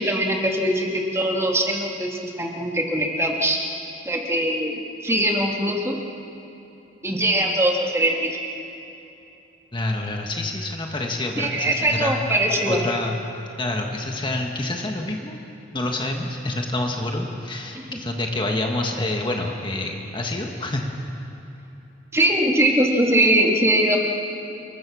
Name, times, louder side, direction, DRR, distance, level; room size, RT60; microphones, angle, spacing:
voice 1, 0.0-3.6 4.1-6.0 7.0-8.4 11.4-12.8 17.7-18.0 22.1-24.0, right 1 dB, 15° right, 0 dB, 2.5 m, -21 dB
voice 2, 9.7-12.2 12.7-13.2 13.6-15.4 15.7-20.9, left 2 dB, 25° left, 1 dB, 1.7 m, -27 dB
28.0 x 23.0 x 6.4 m, 3.0 s
head